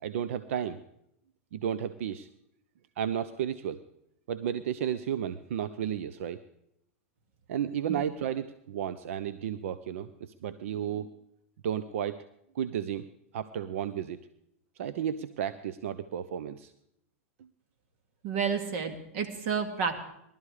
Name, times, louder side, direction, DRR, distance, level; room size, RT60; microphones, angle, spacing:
voice 1, 0.0-0.8 1.5-2.3 3.0-3.8 4.3-6.4 7.5-11.1 11.6-12.2 12.5-13.1 13.3-14.2 14.8-16.7, right 9 dB, 75° right, 13 dB, 0.7 m, -33 dB
voice 2, 18.2-19.9, right 6 dB, 60° right, 8 dB, 2.2 m, -30 dB
19.5 x 12.5 x 4.9 m, 0.77 s
hypercardioid pair, 125°, 7 cm